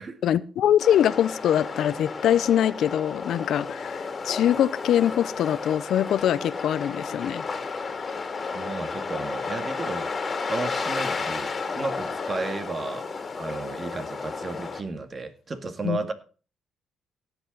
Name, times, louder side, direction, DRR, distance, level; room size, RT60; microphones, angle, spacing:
voice 1, 0.2-7.4 15.8-16.0, left 10 dB, 75° left, 0.7 m, -23 dB
sound 1, 0.8-14.8, left 4 dB, 35° left, 2.4 m, -32 dB
voice 2, 8.5-10.1 10.5-16.1, right 3 dB, 35° right, 2.0 m, -33 dB
17.0 x 8.1 x 4.0 m
cardioid pair, 90°, 0 cm